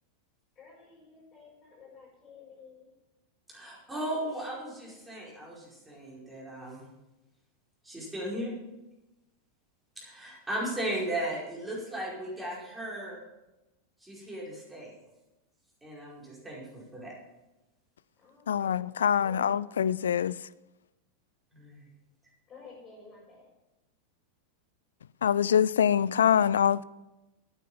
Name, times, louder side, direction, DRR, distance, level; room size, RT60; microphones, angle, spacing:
voice 1, 0.6-2.9 3.9-4.9 18.2-19.8 22.5-23.5, left 4 dB, 30° left, 5.3 m, -53 dB
voice 2, 3.5-6.8 7.8-8.5 10.0-13.2 14.0-14.9 15.8-17.1 21.5-21.9, right 1 dB, 10° right, 4.9 m, -36 dB
voice 3, 18.5-20.4 25.2-26.8, left 8 dB, 65° left, 0.3 m, -24 dB
12.5 x 9.2 x 5.5 m
figure-of-eight pair, 90°, 0 cm